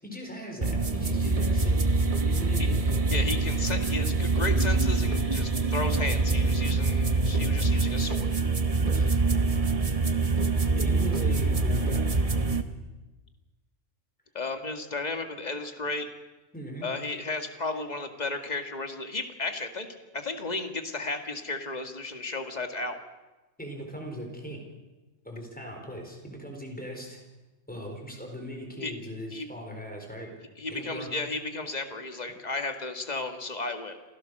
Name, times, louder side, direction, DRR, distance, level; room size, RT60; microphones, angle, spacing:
voice 1, 0.0-2.8 8.8-9.6 10.7-12.1 16.5-16.9 23.6-24.6 25.2-27.2 27.7-30.3 30.7-31.1, equal, 5° left, 2 dB, 4.4 m, -39 dB
sound 1, 0.6-12.6, right 3 dB, 30° right, 1.2 m, -25 dB
voice 2, 3.1-8.3 14.4-16.1 16.8-19.9 20.1-23.0 28.8-28.9 29.3-29.5 30.6-34.0, left 3 dB, 35° left, 6 dB, 1.9 m, -34 dB
27.5 x 16.5 x 6.6 m, 1.1 s
omnidirectional pair, 1.3 m